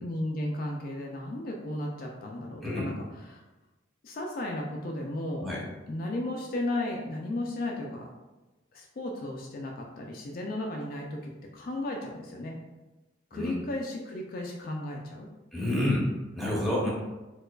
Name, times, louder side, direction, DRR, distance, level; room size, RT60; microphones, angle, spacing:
voice 1, 0.0-3.4 4.0-5.5 5.9-8.1 8.7-12.6 13.3-15.3, left 1 dB, 45° left, 0 dB, 0.3 m, -34 dB
voice 2, 15.5-16.1 16.4-16.9, left 1 dB, ahead, -6 dB, 0.7 m, -28 dB
4.3 x 2.3 x 2.3 m, 1.1 s
head